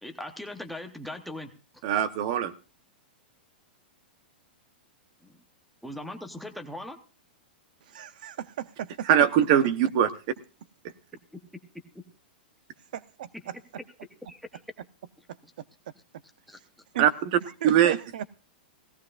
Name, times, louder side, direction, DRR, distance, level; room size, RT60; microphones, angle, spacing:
voice 1, 0.0-1.8 5.2-5.4 5.8-7.0 14.3-14.6 16.5-16.6, left 1 dB, ahead, 0.9 m, -40 dB
voice 2, 1.8-2.5 9.0-10.1 17.0-17.4 17.6-18.0, right 10 dB, 35° right, 0.9 m, -21 dB
voice 3, 7.9-9.1 12.9-13.5 16.9-17.1 17.6-18.2, right 11 dB, 55° right, 0.6 m, -36 dB
17.5 x 16.0 x 2.5 m
supercardioid pair, 180°, 6 cm